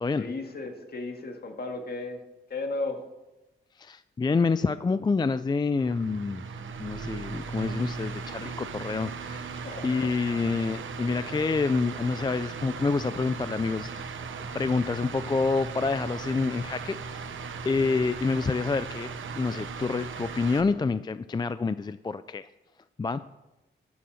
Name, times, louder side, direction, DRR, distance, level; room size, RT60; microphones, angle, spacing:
voice 1, 0.2-2.2 2.5-3.1 9.5-9.9, left 2 dB, 50° left, 4 dB, 1.9 m, -34 dB
voice 2, 3.8-6.4 6.8-9.5 9.8-14.2 14.5-17.3 17.6-22.5 23.0-23.2, left 4 dB, 20° left, 13 dB, 0.3 m, -28 dB
sound 1, 5.8-20.6, right 5 dB, 80° right, 1.1 m, -37 dB
13.5 x 7.0 x 6.4 m, 1.0 s
cardioid pair, 90°, 20 cm